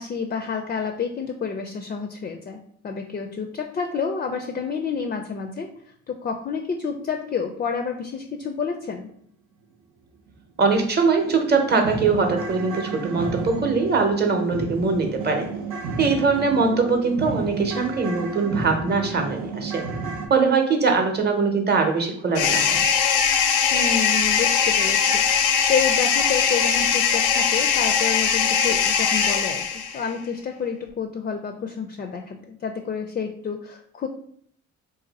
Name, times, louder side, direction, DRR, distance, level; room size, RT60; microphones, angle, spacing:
voice 1, 0.0-5.7 6.1-9.1 23.7-34.1, left 6 dB, 30° left, 5 dB, 0.4 m, -29 dB
sound 1, 10.3-10.4 10.8-10.9 11.2-20.3, right 4 dB, 85° right, 0.7 m, -32 dB
voice 2, 10.6-15.5 16.0-19.8 20.3-22.8, right 4 dB, 35° right, 4 dB, 0.7 m, -22 dB
sound 2, 22.3-30.1, left 7 dB, 85° left, 0.5 m, -21 dB
2.6 x 2.6 x 4.0 m, 0.64 s
cardioid pair, 90°, 30 cm